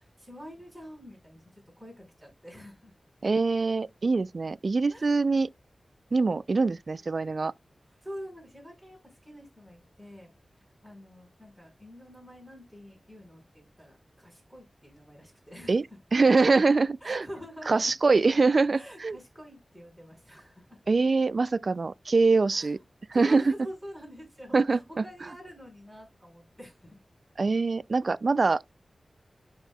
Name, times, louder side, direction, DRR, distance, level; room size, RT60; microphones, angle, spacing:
voice 1, 0.0-2.9 4.9-5.2 8.0-10.3 10.8-15.7 17.0-17.9 18.5-20.8 22.5-22.8 23.1-27.0, equal, ahead, 5.1 m, -46 dB
voice 2, 3.2-5.5 6.1-7.5 15.7-15.8 16.1-17.2 17.7-19.2 20.9-22.8 23.2-23.5 24.5-25.0 27.4-28.7, right 3 dB, 55° right, 0.3 m, -24 dB
11.0 x 4.2 x 2.3 m
wide cardioid pair, 95°, 0 cm